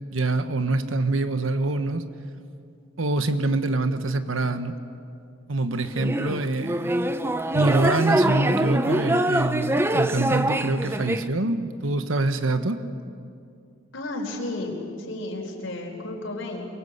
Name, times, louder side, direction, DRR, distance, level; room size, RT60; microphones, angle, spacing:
voice 1, 0.1-2.0 3.0-4.7 5.5-6.9 7.5-12.8, right 2 dB, 80° right, 9 dB, 1.3 m, -25 dB
sound 1, 5.9-11.3, right 1 dB, 10° right, 0.8 m, -24 dB
voice 2, 13.9-16.7, left 2 dB, 70° left, -1 dB, 4.3 m, -32 dB
28.0 x 24.0 x 8.1 m, 2.4 s
head